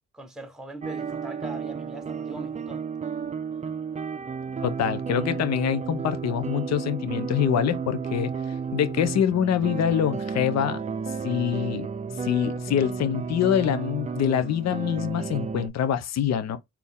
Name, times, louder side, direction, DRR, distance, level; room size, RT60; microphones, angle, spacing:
voice 1, 0.1-2.8, right 1 dB, ahead, 1.0 m, -41 dB
sound 1, 0.8-15.7, right 5 dB, 25° right, 0.5 m, -32 dB
voice 2, 4.6-8.3 8.7-10.8 11.2-11.9 12.2-16.6, left 9 dB, 60° left, 0.8 m, -25 dB
4.2 x 2.8 x 3.5 m
cardioid pair, 90°, 30 cm